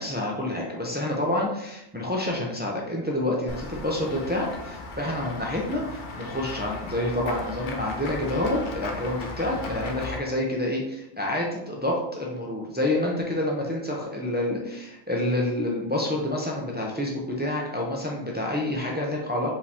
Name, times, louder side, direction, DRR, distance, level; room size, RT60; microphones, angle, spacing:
voice 1, 0.0-19.5, left 1 dB, 15° right, -2 dB, 0.3 m, -28 dB
Run / Walk footsteps / Bell, 3.5-10.2, left 3 dB, 55° left, 0.6 m, -37 dB
4.8 x 3.4 x 2.8 m, 0.84 s
omnidirectional pair, 1.3 m